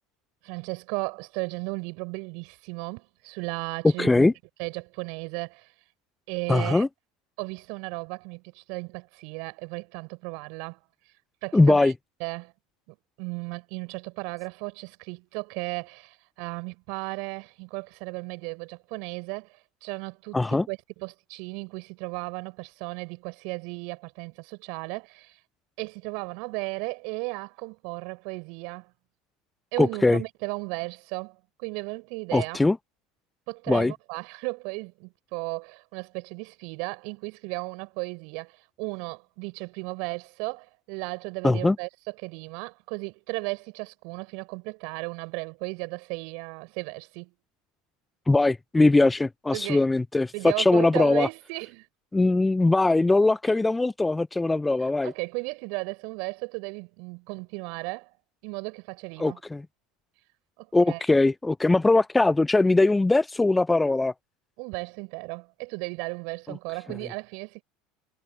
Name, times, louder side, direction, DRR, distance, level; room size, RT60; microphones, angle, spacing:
voice 1, 0.4-4.3 4.6-5.7 6.3-6.9 7.4-10.8 11.4-11.9 12.2-12.5 12.9-25.4 25.8-28.9 29.7-32.6 33.5-47.3 49.5-49.8 50.3-51.9 55.0-58.1 58.4-59.4 60.6-61.0 64.6-67.6, right 34 dB, 60° right, 6.7 m, -35 dB
voice 2, 4.0-4.3 6.5-6.9 11.5-11.9 20.3-20.7 29.8-30.2 32.3-32.8 33.7-33.9 41.4-41.8 48.3-51.3 52.1-55.1 59.2-59.6 60.7-64.1 66.5-66.6, left 2 dB, 10° left, 0.3 m, -21 dB
hypercardioid pair, 75°, 0 cm